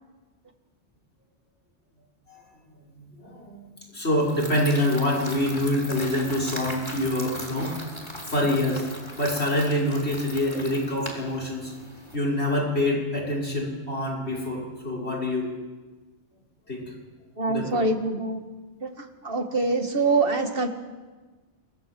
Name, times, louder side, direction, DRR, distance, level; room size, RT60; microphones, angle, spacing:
voice 1, 3.1-3.7 3.9-8.8 9.2-11.7 12.1-15.5 16.7-16.9 17.5-17.8, left 1 dB, 70° left, -1 dB, 6.3 m, -26 dB
sound 1, 4.2-12.2, equal, 25° left, 4.2 m, -39 dB
voice 2, 17.4-18.4 18.8-20.7, right 3 dB, 55° right, 5 dB, 2.4 m, -25 dB
27.0 x 18.0 x 7.8 m, 1.3 s
omnidirectional pair, 1.2 m